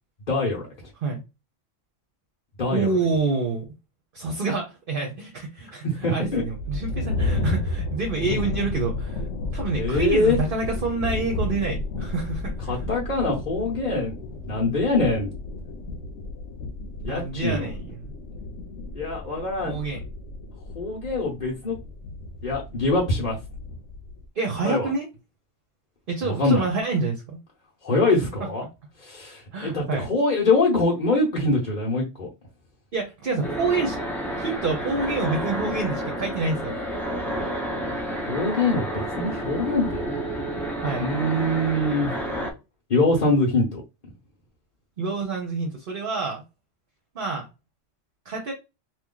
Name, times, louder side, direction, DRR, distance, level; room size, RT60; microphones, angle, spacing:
voice 1, 0.3-0.6 2.6-2.9 5.8-6.4 9.4-10.4 12.7-14.2 14.5-15.3 17.0-17.7 18.9-19.7 20.7-21.8 22.4-23.4 24.6-24.9 26.2-26.7 27.8-28.6 29.0-32.3 38.3-40.1 41.0-42.1 42.9-43.8, left 2 dB, 45° left, 1.0 m, -24 dB
voice 2, 2.7-3.6 4.1-5.8 6.1-9.2 9.5-12.8 17.1-18.1 19.6-20.1 24.4-25.1 26.1-27.4 29.5-30.1 32.9-34.0 34.4-36.7 40.8-41.1 45.0-46.4 47.1-47.5 48.3-48.5, right 3 dB, 50° right, 0.9 m, -27 dB
sound 1, 6.3-24.2, left 2 dB, 85° left, 1.0 m, -32 dB
sound 2, 33.4-42.5, equal, ahead, 0.7 m, -30 dB
3.0 x 2.5 x 3.8 m
omnidirectional pair, 1.2 m